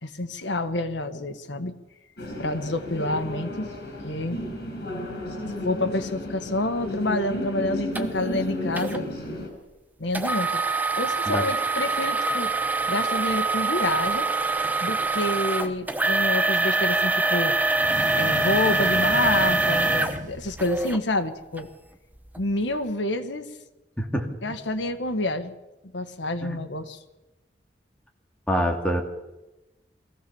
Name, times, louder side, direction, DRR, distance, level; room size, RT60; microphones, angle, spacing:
voice 1, 0.0-1.7 2.4-3.7 4.0-4.4 5.6-9.1 10.0-10.6 11.0-12.5 12.9-14.3 14.8-17.6 18.1-21.7 22.4-23.5 24.4-25.5 25.9-27.0, left 2 dB, 90° left, 8 dB, 1.6 m, -28 dB
sound 1, 2.2-9.5, left 1 dB, 60° left, 5.8 m, -33 dB
sound 2, 7.9-8.0 8.8-9.0 10.1-21.0 21.6-21.7 22.3-22.4, right 3 dB, 10° right, 1.1 m, -24 dB
sound 3, 17.7-20.9, right 2 dB, 45° right, 0.9 m, -35 dB
voice 2, 24.0-24.3 26.4-26.6 28.5-29.0, equal, 5° left, 1 dB, 2.5 m, -25 dB
23.0 x 16.0 x 7.1 m, 1.0 s
head